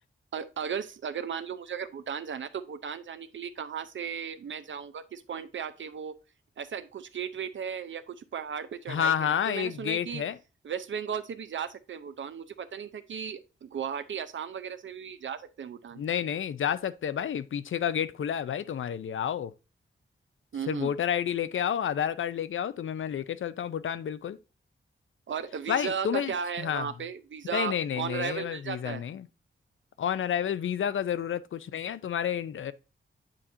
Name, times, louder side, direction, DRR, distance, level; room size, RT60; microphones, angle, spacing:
voice 1, 0.3-6.2 6.6-10.2 10.6-16.0 20.5-20.9 25.3-29.0, right 7 dB, 65° right, 0.6 m, -36 dB
voice 2, 8.9-10.4 16.0-19.5 20.7-24.4 25.7-26.8 27.5-29.3 30.0-32.7, left 9 dB, 75° left, 0.5 m, -30 dB
8.9 x 4.3 x 2.6 m
wide cardioid pair, 125°, 21 cm